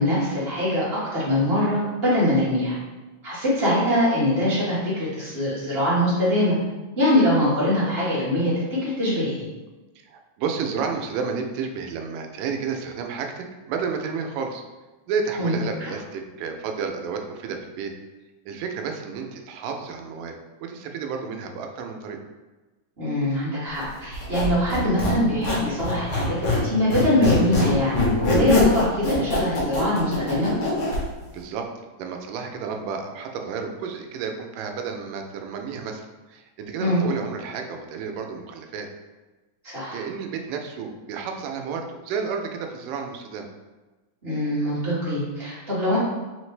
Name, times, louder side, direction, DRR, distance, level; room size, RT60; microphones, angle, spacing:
voice 1, 0.0-2.7 3.2-6.6 7.0-8.5 8.8-9.5 15.4-15.9 23.0-30.5 36.8-37.0 39.6-40.0 44.2-46.0, left 1 dB, 35° right, -10 dB, 0.9 m, -23 dB
voice 2, 10.0-14.6 15.1-17.9 18.5-22.2 30.9-31.7 32.0-38.9 39.9-43.5, right 5 dB, 90° right, 4 dB, 2.2 m, -31 dB
Squeak, 24.1-26.7 26.9-31.0, left 2 dB, 55° left, 1.5 m, -23 dB
5.0 x 3.2 x 3.2 m, 1.2 s
omnidirectional pair, 3.6 m